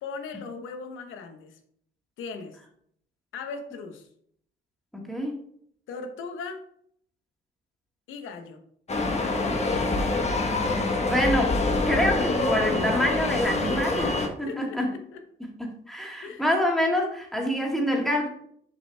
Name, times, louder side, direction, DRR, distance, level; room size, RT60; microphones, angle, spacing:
voice 1, 0.0-1.6 2.2-2.6 3.3-4.1 5.9-6.6 8.1-8.6 14.5-15.2 16.2-16.4, left 4 dB, 85° left, 7 dB, 1.0 m, -38 dB
voice 2, 4.9-5.4 11.1-14.9 15.6-18.3, equal, ahead, -1 dB, 2.0 m, -26 dB
sound 1, 8.9-14.3, left 2 dB, 35° left, 1.2 m, -25 dB
6.7 x 5.4 x 3.4 m, 0.67 s
cardioid pair, 90°, 20 cm